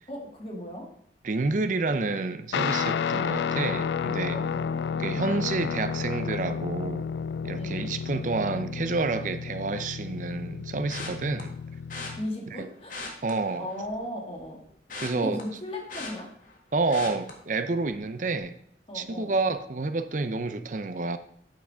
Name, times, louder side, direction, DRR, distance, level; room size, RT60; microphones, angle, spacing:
voice 1, 0.1-0.9 4.3-4.7 7.6-7.9 12.2-13.0 13.6-14.6 15.1-16.3 18.9-19.3, left 1 dB, 30° left, 0 dB, 2.0 m, -36 dB
voice 2, 1.2-4.4 5.0-7.0 7.4-11.5 12.6-12.7 13.2-13.7 15.0-15.4 16.7-18.6 18.9-21.2, right 3 dB, 45° right, 10 dB, 0.6 m, -29 dB
Guitar, 2.5-12.3, left 6 dB, 75° left, 0.3 m, -31 dB
sound 1, 10.9-11.4 11.9-12.1 12.8-14.0 14.4-16.6 16.9-17.3 17.8-18.0 18.3-18.4, left 3 dB, 50° left, 1.5 m, -39 dB
8.7 x 5.9 x 4.9 m, 0.65 s
head